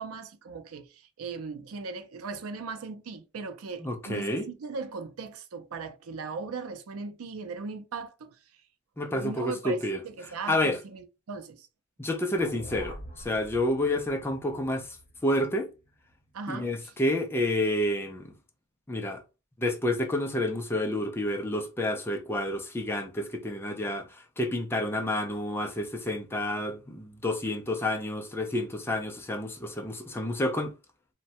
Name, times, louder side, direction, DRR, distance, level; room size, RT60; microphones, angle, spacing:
voice 1, 0.0-8.4 9.1-11.7 16.3-16.9, right 4 dB, 80° right, 0.5 m, -38 dB
voice 2, 3.8-4.5 9.0-10.0 10.5-10.8 12.0-14.9 15.2-15.7 16.5-18.3 18.9-19.2 19.6-30.7, left 1 dB, 10° left, 0.4 m, -29 dB
sound 1, 12.4-16.6, equal, 30° left, 0.9 m, -46 dB
3.1 x 2.2 x 2.8 m
head